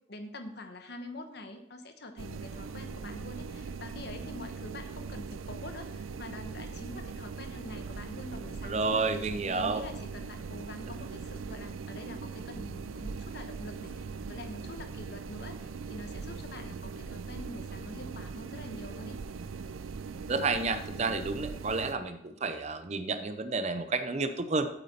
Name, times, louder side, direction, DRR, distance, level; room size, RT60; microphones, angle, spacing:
voice 1, 0.1-19.1, left 1 dB, 55° left, 7 dB, 1.1 m, -45 dB
sound 1, 2.2-21.9, right 5 dB, 80° right, 0.4 m, -40 dB
voice 2, 8.6-9.9 20.3-24.7, right 3 dB, 35° right, 9 dB, 0.6 m, -30 dB
8.4 x 8.2 x 4.2 m, 0.80 s
head